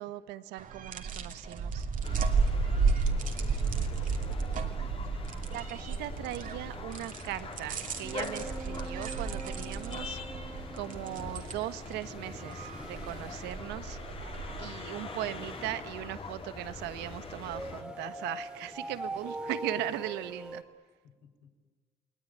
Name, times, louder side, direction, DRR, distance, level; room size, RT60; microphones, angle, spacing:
voice 1, 0.0-1.9 5.5-10.2 10.8-14.0 14.6-20.6, right 14 dB, 90° right, 13 dB, 1.3 m, -39 dB
sound 1, 0.6-14.7, right 4 dB, 50° right, 2.7 m, -33 dB
sound 2, 2.0-17.8, left 4 dB, 35° left, 2.8 m, -43 dB
voice 2, 3.3-4.7 21.0-21.6, left 5 dB, 80° left, 2 dB, 6.3 m, -53 dB
sound 3, 8.0-20.6, right 1 dB, 5° right, 2.7 m, -44 dB
30.0 x 20.5 x 9.7 m, 1.4 s
cardioid pair, 110°, 17 cm